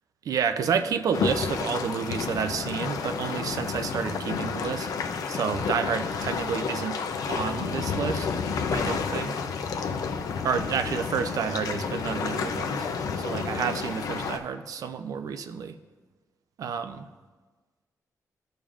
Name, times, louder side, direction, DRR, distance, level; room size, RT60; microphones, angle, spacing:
voice 1, 0.2-4.9 5.3-7.0 7.3-8.3 8.7-9.4 10.4-12.9 13.2-15.7 16.6-17.1, right 6 dB, 75° right, 9 dB, 0.5 m, -30 dB
sound 1, 1.1-14.4, left 5 dB, 85° left, 0.6 m, -30 dB
15.0 x 5.2 x 2.5 m, 1.3 s
wide cardioid pair, 130°, 6 cm